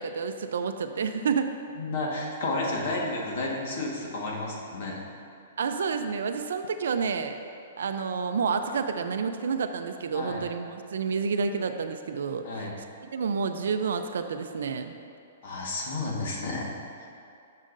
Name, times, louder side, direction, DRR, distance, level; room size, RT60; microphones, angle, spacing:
voice 1, 0.0-1.5 5.6-7.4 7.8-12.7 13.1-14.9, right 5 dB, 75° right, 8 dB, 0.4 m, -29 dB
voice 2, 1.8-5.0 10.1-10.4 12.4-12.7 15.4-16.7 17.0-17.1, left 2 dB, 50° left, -2 dB, 1.4 m, -31 dB
11.0 x 6.5 x 2.6 m, 2.5 s
hypercardioid pair, 170°, 0 cm